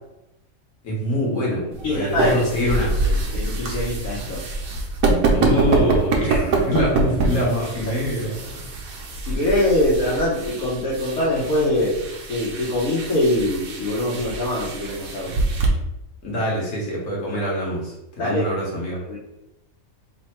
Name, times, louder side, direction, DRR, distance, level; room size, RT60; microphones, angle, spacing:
voice 1, 0.8-2.9 5.3-8.7 16.2-19.0, equal, 65° left, -4 dB, 1.6 m, -24 dB
sound 1, 1.7-15.7, right 3 dB, 75° right, 1.1 m, -25 dB
voice 2, 1.8-2.7 3.0-4.4 7.9-8.0 9.2-15.4 18.2-18.5 18.9-19.2, left 1 dB, 85° left, -9 dB, 1.5 m, -23 dB
3.6 x 2.1 x 4.3 m, 0.90 s
omnidirectional pair, 1.5 m